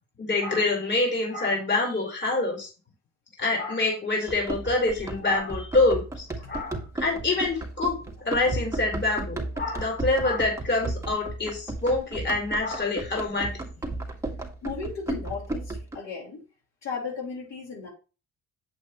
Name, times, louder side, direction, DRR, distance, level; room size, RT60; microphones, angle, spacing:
voice 1, 0.2-2.7 3.4-13.6, left 2 dB, 35° left, -1 dB, 4.6 m, -26 dB
Run, 4.3-16.0, right 2 dB, 10° right, 2.1 m, -34 dB
voice 2, 14.6-16.4 16.8-17.9, left 5 dB, 60° left, -2 dB, 4.5 m, -35 dB
8.1 x 8.0 x 3.1 m, 0.32 s
cardioid pair, 90°, 30 cm